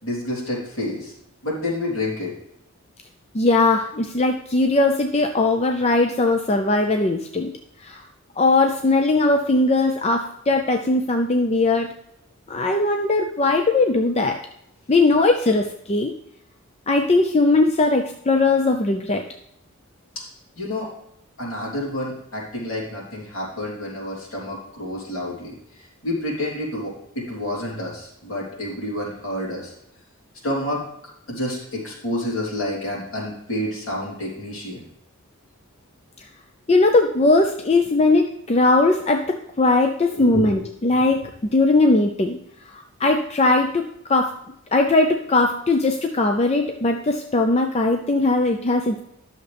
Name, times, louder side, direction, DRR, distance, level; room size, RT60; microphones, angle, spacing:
voice 1, 0.0-1.1 1.4-2.3 20.6-20.9 21.4-29.7 30.4-30.8 31.3-34.9 40.1-40.6 40.9-41.1, left 1 dB, 65° left, -4 dB, 3.4 m, -29 dB
voice 2, 3.3-7.5 7.8-8.0 8.4-11.9 12.5-14.4 14.9-16.1 16.9-19.2 36.7-42.4 42.7-43.8 44.1-44.3 44.7-49.0, left 2 dB, 30° left, 4 dB, 0.5 m, -19 dB
11.5 x 6.5 x 3.4 m, 0.75 s
head